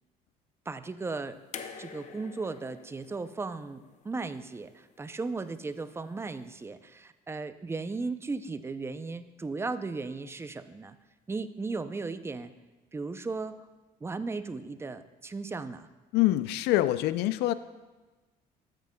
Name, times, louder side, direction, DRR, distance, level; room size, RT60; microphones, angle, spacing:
voice 1, 0.7-1.4 1.8-11.0 11.3-12.5 12.9-13.6 14.0-15.9, right 3 dB, 15° right, 11 dB, 0.4 m, -36 dB
sound 1, 1.5-4.7 5.9-6.0, left 6 dB, 45° left, 0.7 m, -46 dB
voice 2, 16.1-17.5, left 15 dB, 85° left, 15 dB, 0.4 m, -25 dB
13.5 x 9.2 x 2.2 m, 1.2 s
cardioid pair, 110°, 17 cm